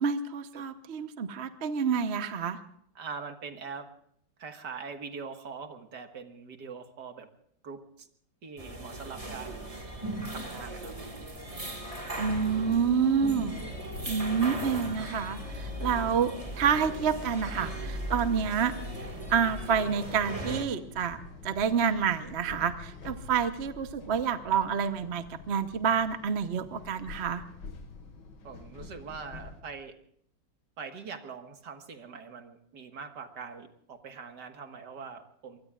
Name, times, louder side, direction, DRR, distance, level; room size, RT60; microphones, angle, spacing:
voice 1, 0.0-2.6 12.2-13.5 14.1-18.7 19.3-21.2 21.4-27.4, right 7 dB, 45° right, 9 dB, 0.9 m, -28 dB
voice 2, 3.0-3.9 4.4-7.3 7.6-8.1 8.4-9.6 10.3-11.0 28.4-29.9 30.8-35.6, right 5 dB, 60° right, 6 dB, 2.1 m, -42 dB
sound 1, 8.6-20.7, right 1 dB, 20° right, 2.0 m, -38 dB
sound 2, 12.1-29.6, left 4 dB, 65° left, 2.3 m, -46 dB
23.5 x 23.5 x 2.4 m, 0.68 s
omnidirectional pair, 2.1 m